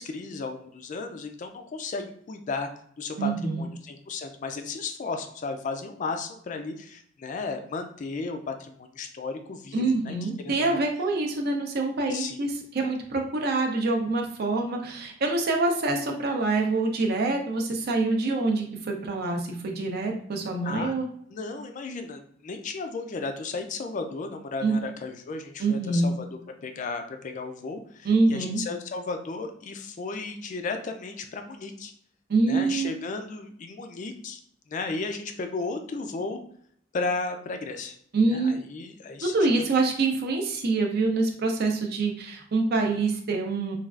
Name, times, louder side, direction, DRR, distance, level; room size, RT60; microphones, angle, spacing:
voice 1, 0.0-2.7 3.0-10.8 12.1-12.4 20.6-20.9 21.3-26.3 26.6-31.9 32.5-34.4 34.7-36.4 36.9-37.9 38.3-39.7, left 3 dB, 40° left, 6 dB, 0.3 m, -34 dB
voice 2, 3.2-3.7 9.7-21.1 24.6-24.8 25.6-26.1 28.0-28.6 32.3-32.9 38.1-38.6 39.2-43.8, right 3 dB, 50° right, 2 dB, 0.5 m, -25 dB
3.2 x 2.3 x 2.4 m, 0.63 s
head